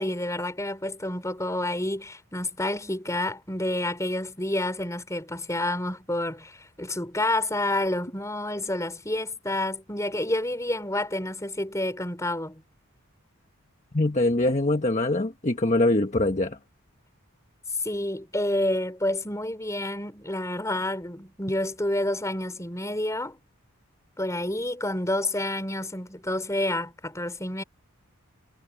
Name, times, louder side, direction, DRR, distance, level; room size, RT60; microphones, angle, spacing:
voice 1, 0.0-12.6 17.8-23.4 24.2-27.6, left 1 dB, 15° left, 4.2 m, -29 dB
voice 2, 13.9-16.6, left 2 dB, 30° left, 1.2 m, -23 dB
head